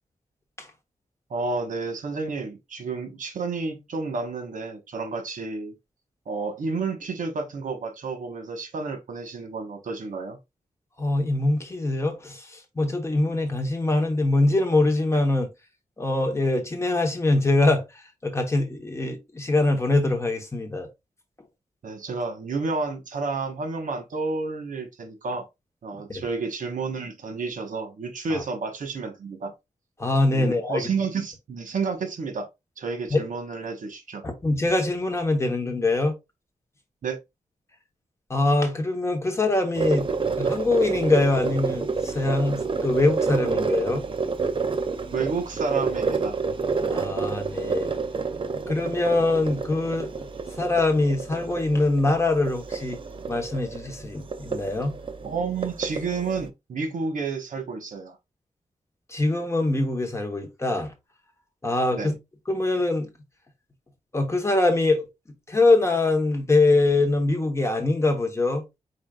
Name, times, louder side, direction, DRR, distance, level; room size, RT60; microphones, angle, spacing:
voice 1, 1.3-5.7 6.3-10.4 21.8-25.5 25.8-29.5 30.3-32.5 32.8-34.2 37.0-37.2 45.1-46.4 55.2-58.2 61.9-62.1, right 4 dB, 80° right, 1.2 m, -30 dB
voice 2, 11.0-15.5 16.0-20.9 26.1-26.2 28.3-28.4 30.0-30.8 33.1-33.3 34.2-36.1 38.3-40.1 40.4-44.0 46.9-47.9 48.7-50.3 50.6-53.0 53.3-54.9 59.1-60.9 61.6-62.1 62.5-63.1 64.1-65.1 65.5-68.6, left 2 dB, 20° left, 1.1 m, -23 dB
sound 1, 39.8-56.5, right 4 dB, 40° right, 0.5 m, -29 dB
4.9 x 4.0 x 2.3 m
wide cardioid pair, 155°, 13 cm